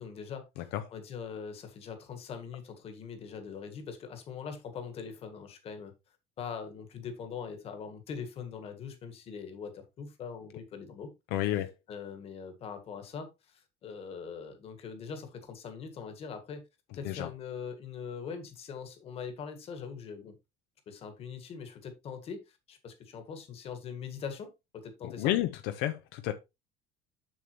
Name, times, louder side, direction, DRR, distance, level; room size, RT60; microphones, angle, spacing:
voice 1, 0.0-5.9 6.4-11.1 11.9-16.6 17.0-20.4 20.9-25.3, left 6 dB, 35° left, 1.7 m, -42 dB
voice 2, 11.3-11.7 17.0-17.3 25.0-25.5 25.8-26.3, left 14 dB, 75° left, 0.9 m, -30 dB
7.3 x 7.1 x 3.1 m
cardioid pair, 170°, 17 cm